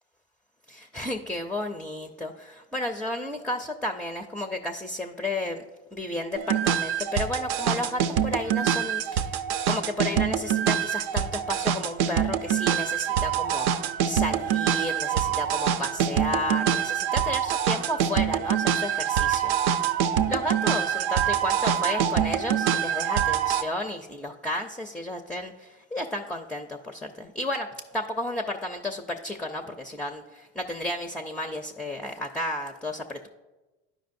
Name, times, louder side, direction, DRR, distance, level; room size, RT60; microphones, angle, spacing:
voice 1, 0.7-5.6 5.9-9.4 9.7-13.7 14.0-19.5 20.3-27.7 27.9-33.3, left 1 dB, 5° left, 5 dB, 0.4 m, -32 dB
sound 1, 6.4-23.6, right 9 dB, 70° right, 0.5 m, -25 dB
11.5 x 5.0 x 2.6 m, 1.1 s
hypercardioid pair, 80°, 34 cm